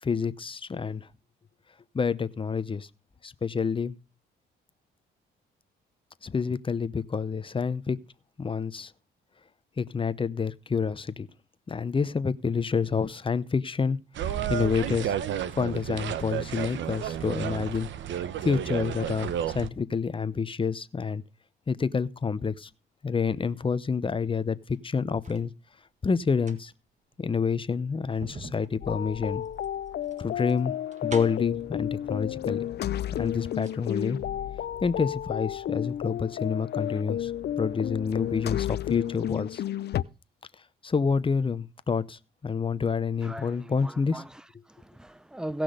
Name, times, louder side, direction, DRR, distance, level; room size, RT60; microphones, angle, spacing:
voice 1, 0.0-1.1 1.9-2.9 3.2-4.0 6.2-8.0 8.4-8.9 9.8-11.3 11.7-14.0 14.3-15.2 15.6-17.9 18.4-21.2 21.7-22.7 23.0-25.5 26.0-26.7 27.2-29.4 30.2-30.7 31.0-32.7 33.1-34.2 34.8-37.3 37.6-39.6 40.8-44.2, left 5 dB, 25° left, 0.8 m, -28 dB
sound 1, 14.2-19.7, right 10 dB, 70° right, 0.9 m, -32 dB
sound 2, 24.5-25.5 26.2-31.6 32.6-32.7 33.0-33.8 34.1-34.2, right 3 dB, 35° right, 1.7 m, -47 dB
sound 3, 28.8-40.0, left 11 dB, 55° left, 0.5 m, -32 dB
voice 2, 43.2-45.6, right 1 dB, 5° right, 0.6 m, -37 dB
17.0 x 6.1 x 5.0 m
cardioid pair, 90°, 20 cm